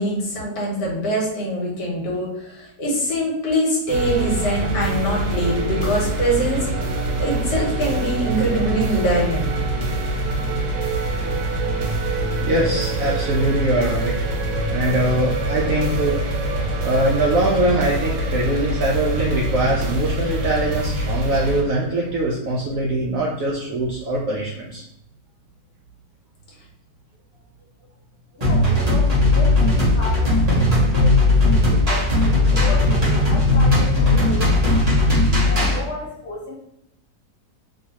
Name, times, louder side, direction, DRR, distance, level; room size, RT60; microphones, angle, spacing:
voice 1, 0.0-9.6, right 1 dB, 75° left, -2 dB, 1.6 m, -23 dB
sound 1, 3.9-21.6, right 2 dB, 90° right, 1.3 m, -24 dB
voice 2, 12.4-14.1 14.7-16.2 16.8-24.8, right 1 dB, 70° right, -3 dB, 0.8 m, -22 dB
voice 3, 28.4-32.1 32.5-34.7 35.2-36.5, left 2 dB, 55° left, -5 dB, 0.8 m, -34 dB
sound 2, 28.4-35.8, left 2 dB, 30° right, 0.8 m, -17 dB
3.1 x 2.8 x 2.8 m, 0.83 s
omnidirectional pair, 1.9 m